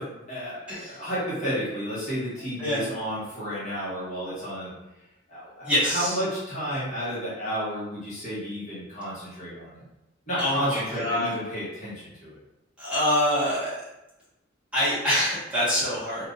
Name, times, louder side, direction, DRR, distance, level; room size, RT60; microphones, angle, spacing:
voice 1, 0.0-4.7 5.3-9.8 10.3-12.4, equal, 40° left, -10 dB, 1.3 m, -32 dB
voice 2, 0.7-1.0 2.6-2.8 5.6-6.2 10.4-11.3 12.8-13.8 14.7-16.3, equal, 5° right, -12 dB, 1.5 m, -25 dB
3.5 x 2.6 x 2.6 m, 0.94 s
head